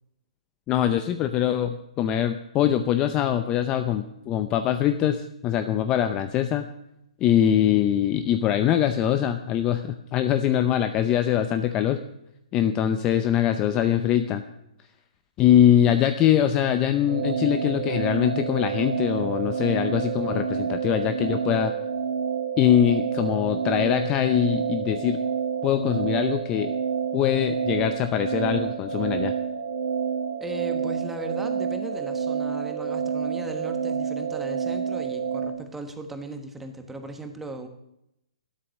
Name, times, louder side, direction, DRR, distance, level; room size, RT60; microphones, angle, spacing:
voice 1, 0.7-6.6 7.2-12.0 12.5-14.4 15.4-21.7 22.6-25.2 25.6-26.7 27.1-29.3, left 10 dB, 20° left, 9 dB, 0.6 m, -23 dB
sound 1, 17.1-35.5, right 7 dB, 40° right, 2.9 m, -28 dB
voice 2, 30.4-37.7, right 2 dB, 5° right, 6 dB, 1.3 m, -37 dB
12.5 x 12.5 x 6.5 m, 0.82 s
hypercardioid pair, 160°, 4 cm